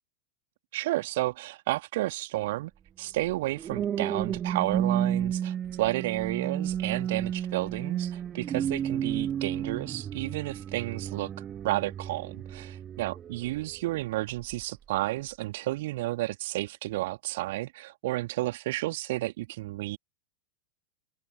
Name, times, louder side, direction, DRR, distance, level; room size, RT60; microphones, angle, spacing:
voice 1, 0.7-2.7 3.0-11.3 11.6-20.0, right 18 dB, 50° right, 2.1 m, -31 dB
sound 1, 3.5-13.8 14.3-14.6, right 9 dB, 25° right, 1.1 m, -32 dB
open air
figure-of-eight pair, 90°, 0 cm